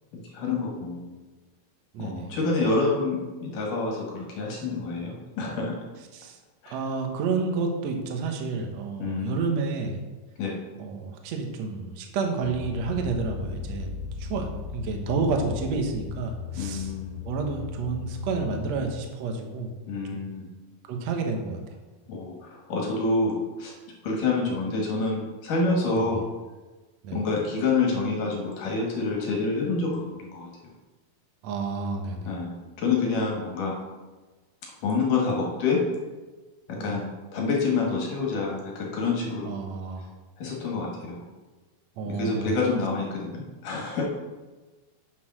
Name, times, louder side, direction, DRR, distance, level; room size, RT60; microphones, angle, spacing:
voice 1, 0.3-1.1 2.0-5.8 6.6-6.8 9.0-9.4 10.4-10.6 16.6-17.1 19.9-20.5 22.1-23.7 24.0-26.3 27.1-30.5 32.3-33.8 34.8-35.8 36.7-37.1 37.3-39.7 40.4-41.3 42.1-44.0, left 3 dB, 60° left, -2 dB, 2.7 m, -27 dB
voice 2, 1.9-2.3 6.1-6.4 6.7-10.0 10.8-13.9 14.2-16.9 17.2-19.7 20.1-20.2 20.9-21.6 25.9-26.2 27.0-27.2 31.4-32.3 36.8-37.0 39.4-40.1 42.0-42.5, right 4 dB, 75° right, 3 dB, 1.5 m, -30 dB
sound 1, 12.4-19.0, left 7 dB, 80° left, 2.4 m, -37 dB
8.3 x 6.5 x 6.1 m, 1.2 s
omnidirectional pair, 4.9 m